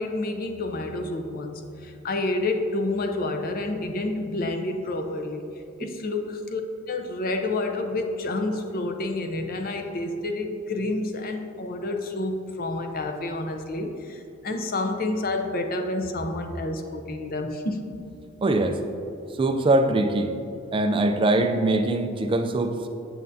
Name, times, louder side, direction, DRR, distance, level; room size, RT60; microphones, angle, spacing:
voice 1, 0.0-5.5 5.8-6.6 6.9-17.8, left 2 dB, 45° left, 4 dB, 0.6 m, -29 dB
voice 2, 18.4-18.8 19.3-20.3 20.7-22.9, right 2 dB, 25° right, 7 dB, 0.3 m, -22 dB
7.6 x 7.5 x 2.7 m, 2.7 s
head